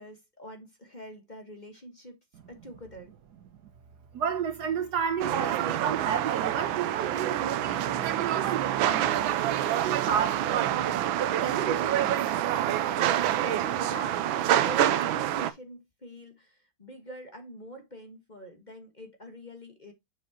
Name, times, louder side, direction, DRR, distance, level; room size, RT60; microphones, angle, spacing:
voice 1, 0.0-2.1 2.5-3.2 12.8-19.9, right 1 dB, 25° left, 1.3 m, -45 dB
voice 2, 4.1-10.8 11.2-12.3, right 7 dB, 65° right, 1.2 m, -32 dB
sound 1, 5.2-15.5, right 11 dB, 90° right, 1.5 m, -27 dB
7.3 x 6.1 x 2.8 m
omnidirectional pair, 2.1 m